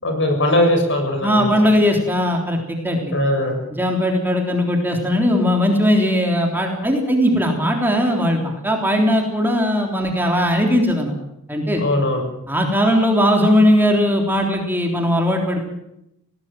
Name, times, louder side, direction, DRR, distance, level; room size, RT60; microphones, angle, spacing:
voice 1, 0.0-1.5 3.1-3.6 11.8-12.2, left 1 dB, 60° left, 4 dB, 7.1 m, -19 dB
voice 2, 1.2-3.1 3.7-11.2 11.5-11.8 12.5-15.6, equal, 10° right, 2 dB, 3.5 m, -18 dB
20.0 x 19.0 x 7.6 m, 0.83 s
head